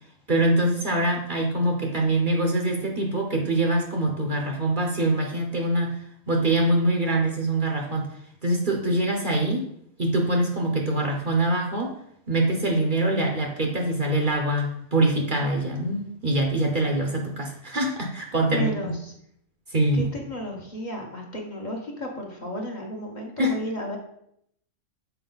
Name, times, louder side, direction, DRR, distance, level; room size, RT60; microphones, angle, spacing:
voice 1, 0.3-6.0 6.3-8.1 8.4-9.6 10.0-12.0 12.3-18.9 19.7-20.1 23.4-23.5, right 1 dB, 45° right, 1 dB, 1.0 m, -24 dB
voice 2, 18.5-19.1 19.9-24.0, equal, 35° left, -1 dB, 1.3 m, -33 dB
6.9 x 4.8 x 3.9 m, 0.73 s
omnidirectional pair, 1.3 m